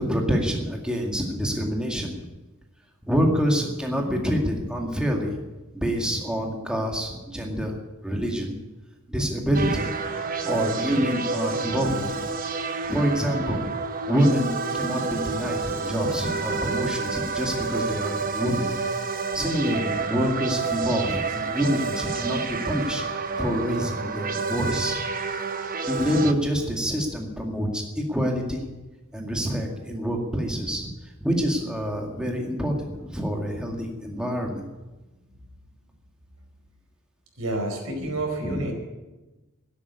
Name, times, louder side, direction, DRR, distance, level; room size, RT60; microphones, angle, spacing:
voice 1, 0.0-2.1 3.1-5.4 5.7-7.7 8.0-8.5 9.1-9.9 10.4-12.3 12.8-13.6 14.1-18.7 19.3-25.0 25.8-28.6 29.1-30.9 31.2-34.7 38.0-38.1 38.4-38.6, equal, 5° right, 0 dB, 2.0 m, -26 dB
sound 1, 9.5-26.3, right 4 dB, 40° right, 1.0 m, -29 dB
voice 2, 37.4-38.7, right 2 dB, 75° right, 3 dB, 4.7 m, -29 dB
13.0 x 11.0 x 9.6 m, 1.1 s
head